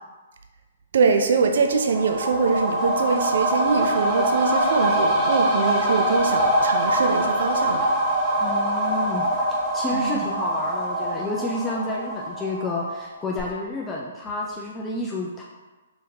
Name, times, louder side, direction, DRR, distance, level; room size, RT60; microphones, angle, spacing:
voice 1, 0.9-7.9 9.9-10.2, right 4 dB, 60° right, 5 dB, 0.4 m, -23 dB
sound 1, 1.6-13.1 13.4-13.5, right 1 dB, 20° right, 0.9 m, -24 dB
voice 2, 8.4-15.4, left 2 dB, 15° left, -3 dB, 0.5 m, -30 dB
4.9 x 3.8 x 2.8 m, 1.2 s
figure-of-eight pair, 125°, 0 cm